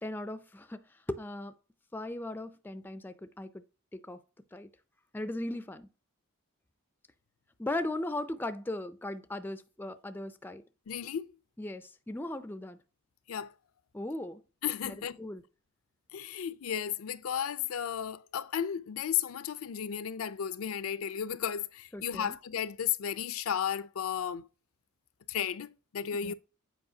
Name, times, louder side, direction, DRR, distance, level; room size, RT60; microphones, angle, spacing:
voice 1, 0.0-0.8 1.1-1.5 1.9-3.6 3.9-4.2 4.5-4.7 5.1-5.9 7.6-10.6 11.6-12.8 13.9-14.4 14.8-15.4 21.9-22.4 26.2-26.3, left 1 dB, 10° left, 0.3 m, -38 dB
voice 2, 10.9-11.3 13.3-13.5 14.6-15.2 16.1-24.4 25.3-26.3, left 9 dB, 70° left, 0.5 m, -34 dB
8.0 x 4.8 x 2.7 m
head